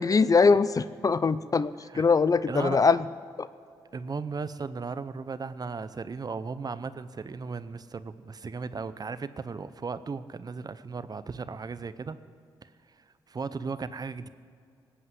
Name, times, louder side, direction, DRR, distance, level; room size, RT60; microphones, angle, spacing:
voice 1, 0.0-3.0 3.4-3.5, left 4 dB, 35° left, 16 dB, 0.5 m, -22 dB
voice 2, 2.5-2.8 3.9-12.2 12.6-12.7 13.3-14.3, right 4 dB, 40° right, 14 dB, 0.7 m, -36 dB
19.0 x 8.0 x 7.9 m, 2.3 s
supercardioid pair, 50°, 10 cm